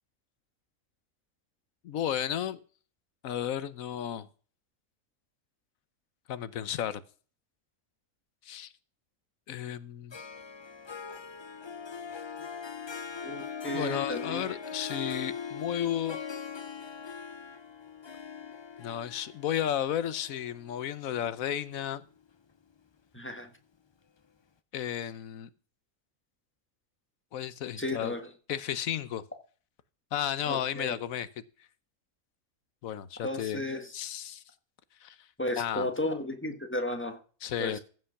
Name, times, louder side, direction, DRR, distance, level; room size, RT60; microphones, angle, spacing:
voice 1, 1.8-2.6 3.2-4.3 6.3-7.0 8.4-8.7 9.5-10.2 13.7-16.2 18.8-22.0 24.7-25.5 27.3-28.1 28.5-29.2 30.1-31.3 32.8-33.6 33.9-34.4 35.0-35.2 35.6-35.9 37.4-37.8, left 10 dB, 90° left, 1.2 m, -33 dB
Harp, 10.1-21.5, left 6 dB, 40° left, 0.4 m, -41 dB
voice 2, 13.2-14.6 23.1-23.5 27.8-28.3 30.4-30.9 33.2-33.9 35.4-37.2 37.6-37.8, left 1 dB, 10° left, 1.5 m, -34 dB
15.0 x 5.6 x 5.7 m
omnidirectional pair, 1.4 m